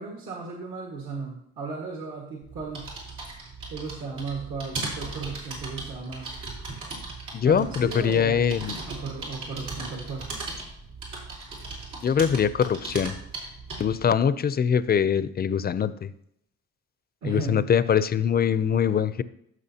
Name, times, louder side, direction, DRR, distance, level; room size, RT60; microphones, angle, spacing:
voice 1, 0.0-2.9 3.7-6.3 7.4-8.6 8.9-10.2 17.2-17.6, right 4 dB, 65° right, -1 dB, 1.7 m, -35 dB
sound 1, 2.4-14.0, right 3 dB, 85° right, 3.4 m, -38 dB
voice 2, 7.3-8.8 12.0-13.1 13.8-16.1 17.2-19.2, left 7 dB, 30° left, 15 dB, 0.5 m, -23 dB
14.0 x 6.2 x 2.8 m, 0.75 s
cardioid pair, 90°, 30 cm